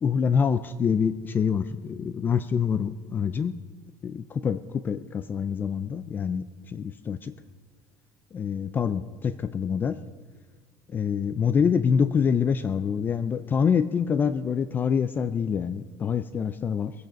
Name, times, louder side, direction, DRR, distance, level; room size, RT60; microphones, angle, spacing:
voice 1, 0.0-3.5 4.0-7.3 8.3-10.0 10.9-16.9, left 6 dB, 25° left, 13 dB, 0.4 m, -26 dB
22.5 x 8.9 x 5.2 m, 1.5 s
cardioid pair, 155°, 8 cm